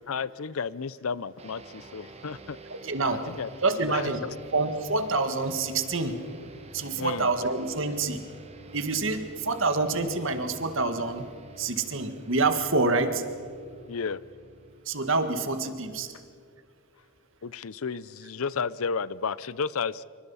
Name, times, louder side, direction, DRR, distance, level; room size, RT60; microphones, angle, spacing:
voice 1, 0.1-2.6 3.1-3.5 3.9-4.0 7.0-7.3 13.9-14.2 17.4-20.0, left 5 dB, 70° left, 0.6 m, -32 dB
sound 1, 1.4-16.2, right 3 dB, 30° right, 1.5 m, -48 dB
voice 2, 2.7-3.2 3.6-4.3 4.5-6.2 6.7-8.2 8.7-11.3 11.6-13.2 14.9-16.1, right 3 dB, 60° right, 1.8 m, -27 dB
26.0 x 25.0 x 5.6 m
head